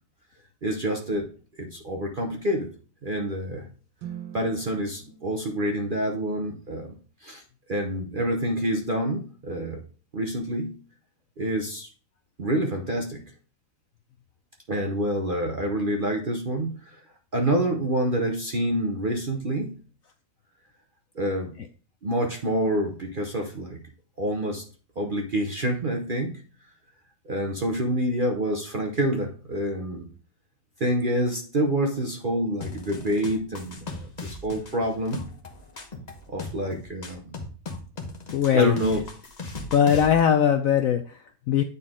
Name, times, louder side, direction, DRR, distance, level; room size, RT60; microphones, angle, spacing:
voice 1, 0.6-1.3 1.6-2.7 3.0-3.7 4.3-7.4 7.7-9.8 10.1-10.8 11.4-11.9 12.4-13.2 14.7-17.0 17.3-19.8 21.1-21.5 22.0-23.8 24.2-24.7 25.0-26.4 27.2-30.1 30.8-35.3 36.3-37.3 38.5-39.0, right 1 dB, 45° right, 2 dB, 0.7 m, -27 dB
sound 1, 4.0-6.4, right 9 dB, 90° right, 1.5 m, -43 dB
sound 2, 32.6-40.2, left 3 dB, 30° left, 0.9 m, -38 dB
voice 2, 38.3-38.7 39.7-41.6, left 8 dB, 75° left, 7 dB, 0.8 m, -20 dB
9.3 x 4.1 x 3.6 m, 0.40 s
omnidirectional pair, 1.9 m